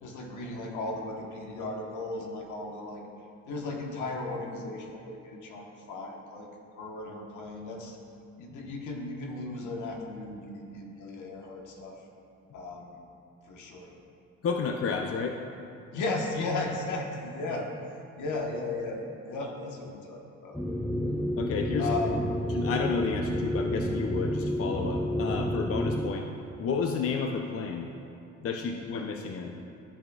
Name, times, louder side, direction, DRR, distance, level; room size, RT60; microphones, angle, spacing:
voice 1, 0.0-3.0 3.5-6.5 6.7-8.0 8.4-12.0 12.5-13.0 13.5-13.9 15.9-20.6 21.8-22.3, left 2 dB, 80° left, 0 dB, 1.2 m, -36 dB
voice 2, 14.4-15.4 21.4-21.9 22.5-26.3 26.6-27.9 28.4-29.5, left 5 dB, 50° left, 3 dB, 0.6 m, -31 dB
sound 1, 20.5-26.1, equal, 5° left, 0.6 m, -30 dB
14.0 x 6.0 x 2.3 m, 2.6 s
cardioid pair, 90°, 30 cm